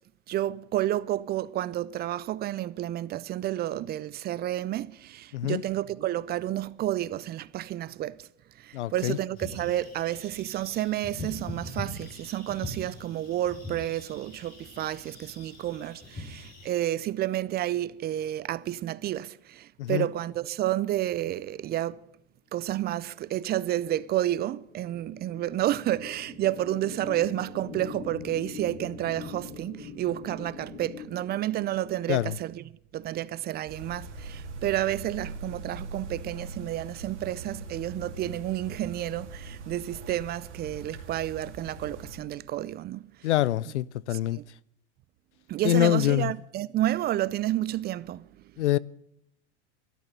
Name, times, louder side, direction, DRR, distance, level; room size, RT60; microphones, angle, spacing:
voice 1, 0.3-8.3 8.6-22.0 22.5-32.6 32.9-43.1 44.1-44.4 45.5-48.3, right 13 dB, 30° right, 0.5 m, -30 dB
voice 2, 8.7-9.2 19.8-20.1 32.1-32.4 43.2-44.4 45.6-46.3 48.6-48.8, left 13 dB, 80° left, 0.6 m, -25 dB
sound 1, 9.4-16.7, left 2 dB, 25° left, 5.2 m, -42 dB
sound 2, 23.2-32.0, left 5 dB, 45° left, 7.0 m, -44 dB
sound 3, 33.7-42.2, right 3 dB, 85° right, 2.4 m, -41 dB
12.5 x 11.5 x 6.8 m
hypercardioid pair, 95°, 34 cm